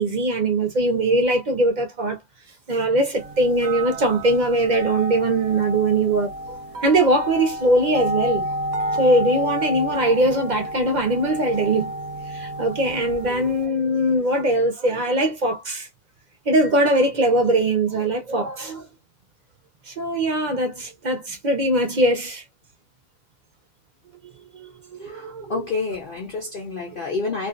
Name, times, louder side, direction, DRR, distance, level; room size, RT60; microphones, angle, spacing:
voice 1, 0.0-2.2 2.7-6.3 6.8-8.5 9.0-11.9 12.3-15.9 16.5-18.8 19.9-22.4 24.5-25.6, right 1 dB, 50° right, 0.5 m, -21 dB
sound 1, 3.2-13.7, equal, 70° right, 0.9 m, -30 dB
voice 2, 25.0-27.5, left 4 dB, 90° left, 0.4 m, -29 dB
2.5 x 2.4 x 2.4 m
omnidirectional pair, 1.7 m